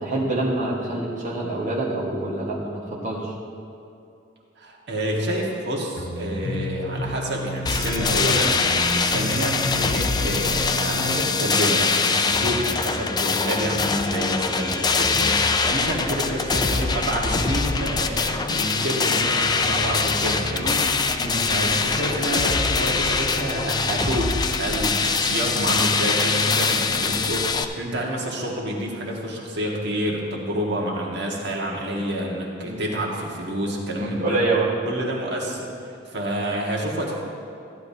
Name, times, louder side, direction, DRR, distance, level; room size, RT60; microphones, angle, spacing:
voice 1, 0.0-3.3 21.2-21.4 32.6-32.8 34.0-34.7, right 2 dB, 45° right, -5 dB, 1.4 m, -26 dB
voice 2, 4.6-20.8 21.5-34.4 34.8-35.7 36.1-37.1, equal, 65° right, -2 dB, 1.6 m, -28 dB
sound 1, 5.9-11.3, equal, 85° left, 0.9 m, -32 dB
sound 2, 7.7-27.7, left 4 dB, 20° left, 0.4 m, -23 dB
14.0 x 11.0 x 2.8 m, 2.6 s
head